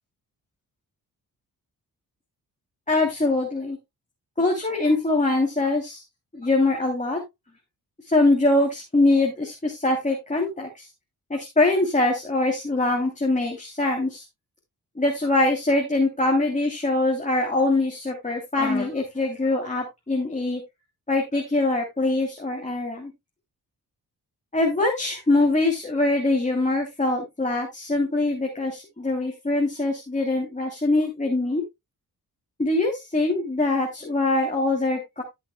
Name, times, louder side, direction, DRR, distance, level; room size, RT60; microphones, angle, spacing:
voice 1, 2.9-3.8 4.4-6.0 6.3-7.2 8.1-10.8 11.3-14.2 15.0-20.6 21.1-23.1 24.5-31.6 32.6-35.2, left 2 dB, 20° left, 0 dB, 3.0 m, -23 dB
16.5 x 6.0 x 2.3 m, 0.21 s
cardioid pair, 70°, 37 cm